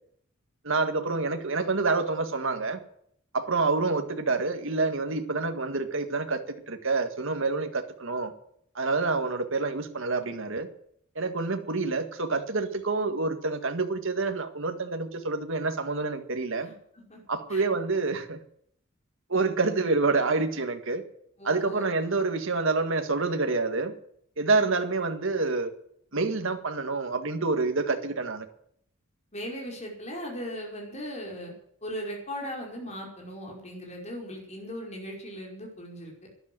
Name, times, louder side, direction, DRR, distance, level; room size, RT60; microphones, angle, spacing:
voice 1, 0.6-2.8 3.3-8.3 8.8-10.7 11.2-16.7 17.3-18.4 19.3-21.0 21.4-23.9 24.4-25.7 26.1-28.5, right 3 dB, 60° right, 6 dB, 1.8 m, -27 dB
voice 2, 16.6-17.2 17.5-17.6 21.4-21.9 29.3-31.5 31.8-36.1, equal, 30° left, -1 dB, 5.2 m, -38 dB
12.5 x 10.5 x 9.3 m, 0.67 s
head